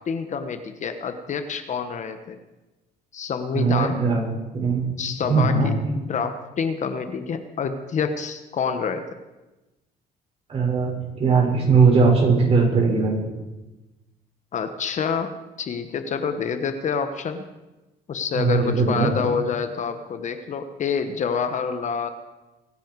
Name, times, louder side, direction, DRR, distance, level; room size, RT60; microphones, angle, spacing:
voice 1, 0.0-2.4 3.1-4.0 5.0-9.0 14.5-15.3 15.6-17.4 18.1-22.1, left 6 dB, 45° left, 9 dB, 1.2 m, -27 dB
voice 2, 3.5-4.2 4.5-4.9 5.3-5.7 10.5-13.2 18.3-19.1, right 4 dB, 35° right, -2 dB, 6.1 m, -19 dB
24.0 x 10.0 x 4.8 m, 1.1 s
cardioid pair, 110°, 17 cm